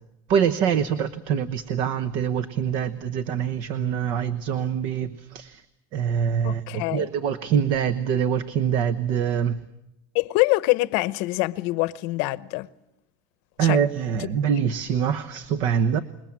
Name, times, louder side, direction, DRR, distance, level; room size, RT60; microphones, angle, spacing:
voice 1, 0.3-5.6 5.9-9.6 13.6-16.0, right 8 dB, 45° right, 1.0 m, -24 dB
voice 2, 6.4-7.1 10.1-12.7 13.6-13.8, left 21 dB, 60° left, 0.9 m, -24 dB
27.0 x 21.0 x 7.5 m
supercardioid pair, 160°, 11 cm